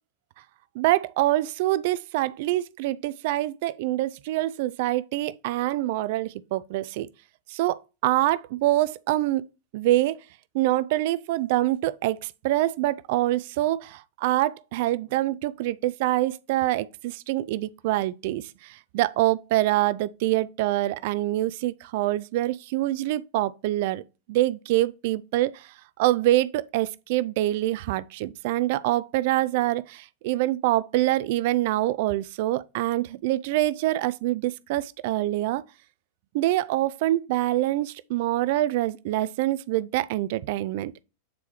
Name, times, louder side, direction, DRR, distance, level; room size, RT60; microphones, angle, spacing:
voice 1, 0.8-7.1 7.5-9.5 9.7-10.2 10.5-24.0 24.3-25.7 26.0-35.6 36.3-40.9, right 16 dB, 50° right, 0.4 m, -25 dB
8.4 x 4.6 x 3.0 m
figure-of-eight pair, 90°, 0 cm